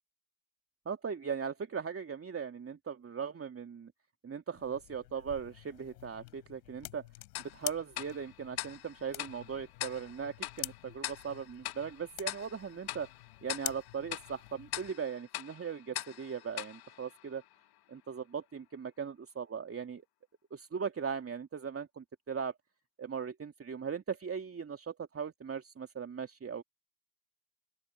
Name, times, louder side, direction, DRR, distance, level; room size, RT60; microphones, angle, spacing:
voice 1, 0.8-3.9 4.2-7.0 7.5-13.1 13.4-17.4 17.9-20.0 20.5-22.5 23.0-26.6, right 6 dB, 25° right, 2.9 m, -39 dB
sound 1, 4.5-14.9, left 21 dB, 70° left, 4.5 m, -47 dB
Tick-tock, 7.3-17.8, left 15 dB, 50° left, 1.7 m, -43 dB
open air
figure-of-eight pair, 60°, 50 cm